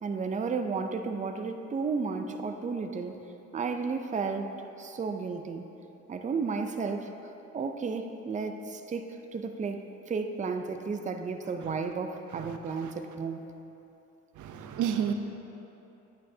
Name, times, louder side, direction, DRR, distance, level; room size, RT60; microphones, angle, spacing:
voice 1, 0.0-3.2 3.5-5.7 6.1-7.1 7.5-13.5, right 4 dB, 25° right, 6 dB, 0.5 m, -33 dB
voice 2, 14.4-15.1, right 9 dB, 75° right, 7 dB, 0.6 m, -30 dB
10.0 x 8.8 x 2.7 m, 2.9 s
cardioid pair, 90°, 30 cm